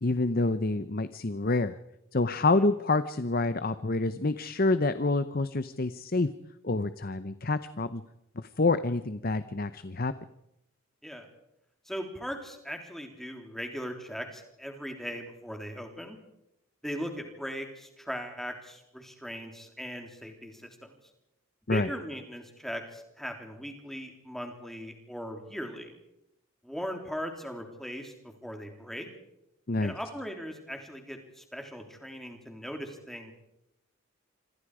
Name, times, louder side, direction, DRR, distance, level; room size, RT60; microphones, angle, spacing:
voice 1, 0.0-1.8 2.1-6.3 6.6-8.0 8.4-10.1 21.7-21.9 29.7-29.9, left 2 dB, 45° left, 12 dB, 0.8 m, -27 dB
voice 2, 11.9-16.2 16.8-20.9 21.7-25.9 26.6-28.1 28.4-29.1 29.8-33.3, equal, ahead, 3 dB, 3.6 m, -39 dB
27.0 x 26.5 x 5.0 m, 0.86 s
head